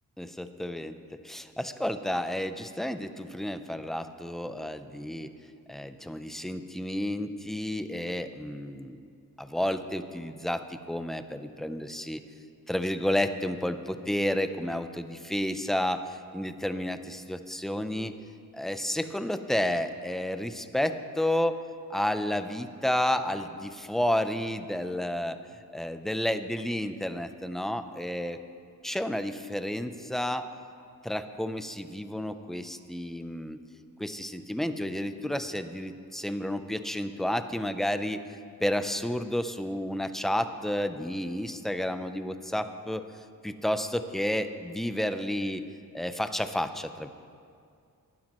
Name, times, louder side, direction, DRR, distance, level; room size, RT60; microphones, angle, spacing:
voice 1, 0.2-1.0 1.2-5.3 5.7-9.1 9.4-12.2 12.7-18.1 18.5-25.4 25.7-28.4 28.8-30.5 31.0-33.6 34.0-38.2 38.6-43.0 43.4-45.6 45.9-47.1, left 1 dB, ahead, 9 dB, 0.5 m, -31 dB
20.0 x 11.5 x 3.1 m, 2.3 s
wide cardioid pair, 95°, 36 cm